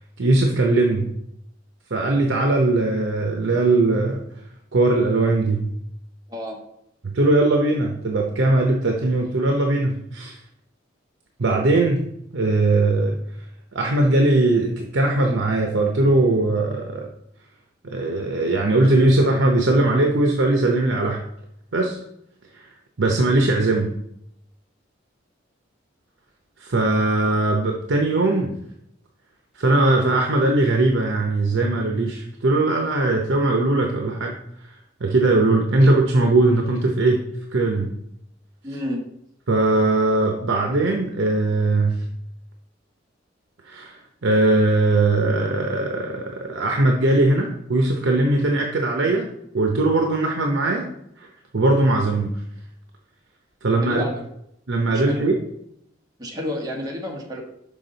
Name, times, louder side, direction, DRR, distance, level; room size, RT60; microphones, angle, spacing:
voice 1, 0.2-1.1 1.9-4.2 4.7-5.7 7.0-10.4 11.4-12.0 12.3-13.2 13.7-17.1 17.8-21.2 21.7-22.0 22.5-22.7 23.0-23.9 26.6-28.5 29.6-34.3 35.0-37.2 37.5-37.9 39.5-42.0 43.7-49.3 49.5-50.9 51.2-51.3 51.5-52.3 53.6-54.0 54.7-55.4, right 2 dB, 75° right, 2 dB, 0.7 m, -20 dB
voice 2, 38.6-39.0 53.8-54.2 54.9-55.3 56.2-57.4, left 1 dB, 20° right, -1 dB, 1.4 m, -30 dB
6.0 x 5.2 x 3.9 m, 0.76 s
head